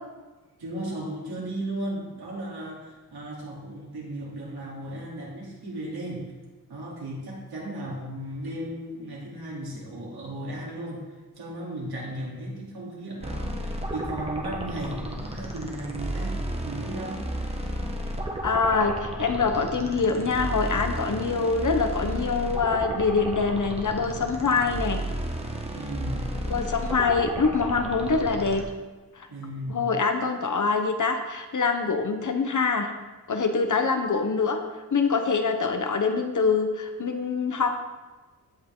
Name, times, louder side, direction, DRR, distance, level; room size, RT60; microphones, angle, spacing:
voice 1, 0.6-6.3 6.7-16.4 16.6-17.3 25.7-26.3 29.3-29.9, right 1 dB, 80° right, -4 dB, 3.2 m, -35 dB
sound 1, 13.2-28.6, right 1 dB, 15° right, 1.2 m, -33 dB
voice 2, 18.4-25.0 26.5-28.6 29.7-32.9 33.3-34.6 34.9-37.7, left 4 dB, 55° left, 5 dB, 1.1 m, -24 dB
16.0 x 5.6 x 3.8 m, 1.2 s
wide cardioid pair, 140°, 37 cm